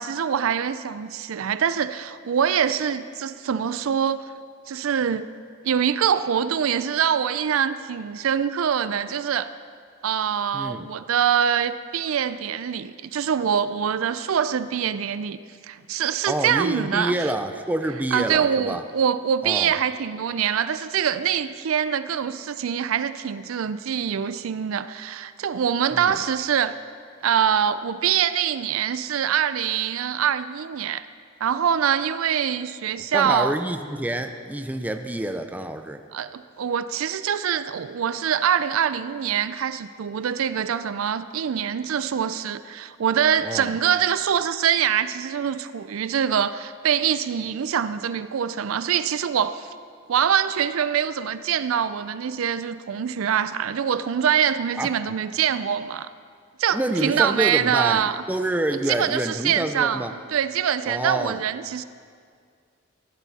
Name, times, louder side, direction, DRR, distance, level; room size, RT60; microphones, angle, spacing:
voice 1, 0.0-4.2 4.7-5.3 5.6-9.5 10.0-17.2 18.1-26.7 27.2-31.1 31.4-33.6 36.1-49.7 50.1-56.1 56.6-58.2 58.9-60.0 60.3-61.8, right 8 dB, 75° right, 14 dB, 0.4 m, -24 dB
voice 2, 10.5-10.9 16.3-18.8 19.4-19.7 25.9-26.2 33.1-36.0 43.4-43.7 54.8-54.9 56.7-60.1 60.9-61.4, right 1 dB, 10° right, 7 dB, 0.4 m, -27 dB
15.5 x 11.0 x 4.1 m, 2.1 s
head